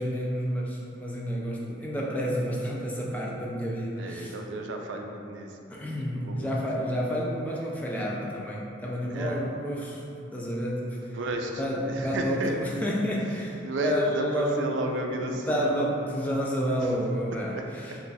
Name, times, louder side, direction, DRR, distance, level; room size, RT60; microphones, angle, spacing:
voice 1, 0.0-4.4 5.7-10.0 10.3-11.2 11.6-18.0, equal, 10° left, -4 dB, 0.3 m, -30 dB
voice 2, 4.0-5.5 6.1-6.5 9.1-9.4 11.1-12.5 13.6-15.9 16.8-16.9 17.5-17.6 17.9-18.0, right 2 dB, 85° right, 3 dB, 0.4 m, -33 dB
3.1 x 2.3 x 3.9 m, 2.6 s
head